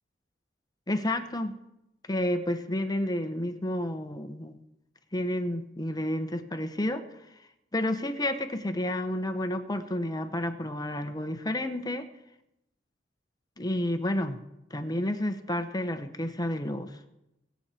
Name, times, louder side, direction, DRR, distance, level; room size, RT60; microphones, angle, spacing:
voice 1, 0.9-1.6 2.1-4.5 5.1-7.0 7.7-12.1 13.6-14.4 14.7-16.9, left 1 dB, 20° left, 8 dB, 1.0 m, -30 dB
23.0 x 8.2 x 4.4 m, 0.87 s
head